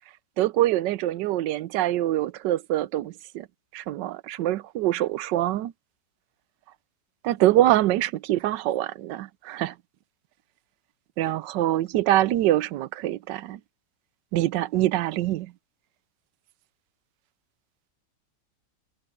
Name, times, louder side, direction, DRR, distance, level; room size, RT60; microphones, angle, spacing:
voice 1, 0.4-3.5 3.7-5.7 7.2-9.7 11.2-13.6 14.3-15.5, right 14 dB, 85° right, 1.3 m, -24 dB
omnidirectional pair, 1.9 m